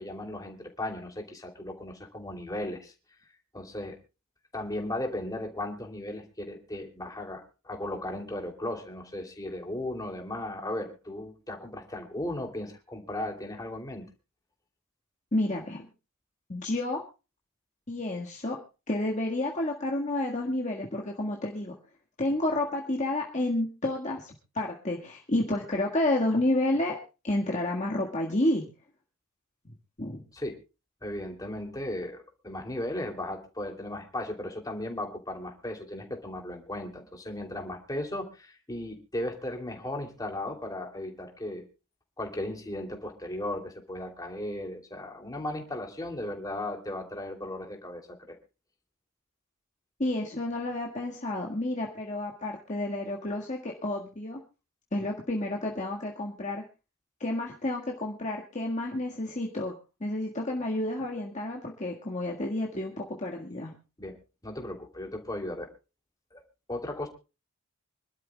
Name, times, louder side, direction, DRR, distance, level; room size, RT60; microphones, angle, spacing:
voice 1, 0.0-2.9 3.5-4.0 4.5-14.0 30.3-30.5 31.0-41.6 42.2-48.0 48.3-48.4 64.0-64.2 64.4-65.7 66.3-66.4 66.7-67.1, left 1 dB, 15° left, 2 dB, 2.9 m, -36 dB
voice 2, 15.3-15.9 16.5-17.0 17.9-18.6 18.9-21.8 22.2-27.0 27.2-28.6 30.0-30.2 50.0-54.4 54.9-56.6 57.2-59.7 60.0-63.7, left 1 dB, 35° left, -1 dB, 1.7 m, -30 dB
26.0 x 12.5 x 2.3 m, 0.31 s
head